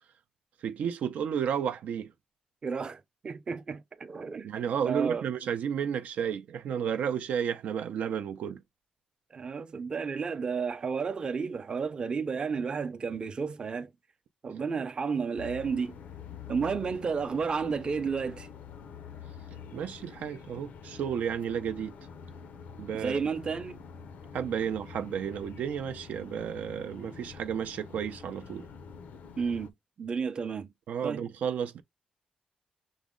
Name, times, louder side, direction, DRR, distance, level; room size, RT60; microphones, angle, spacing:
voice 1, 0.6-2.1 4.4-8.6 19.7-21.9 22.8-23.2 24.3-28.7 30.9-31.8, right 8 dB, 80° right, 0.4 m, -32 dB
voice 2, 2.6-4.5 4.8-5.3 9.3-13.9 14.4-16.0 16.5-18.5 22.9-23.8 29.4-29.7 30.0-30.7 31.0-31.2, right 5 dB, 35° right, 0.6 m, -32 dB
sound 1, 15.4-29.7, left 6 dB, 80° left, 0.5 m, -46 dB
6.1 x 2.1 x 3.6 m
wide cardioid pair, 130°, 3 cm